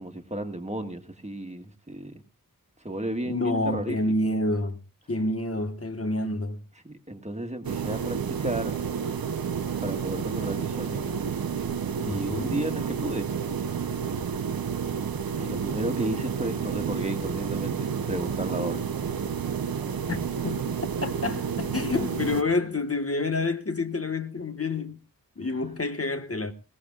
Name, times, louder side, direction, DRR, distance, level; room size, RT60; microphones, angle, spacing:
voice 1, 0.0-2.2 2.8-4.0 6.8-8.8 9.8-11.1 12.1-13.3 14.1-14.2 15.4-18.8 21.9-22.1, right 1 dB, 20° right, 1.7 m, -33 dB
voice 2, 3.3-4.8 5.1-6.6 12.0-12.6 20.1-20.2 20.4-20.7 21.0-25.0 25.4-26.5, left 2 dB, 40° left, 1.4 m, -28 dB
sound 1, 7.6-22.4, right 7 dB, 80° right, 0.8 m, -30 dB
21.0 x 17.5 x 2.4 m
wide cardioid pair, 80°, 35 cm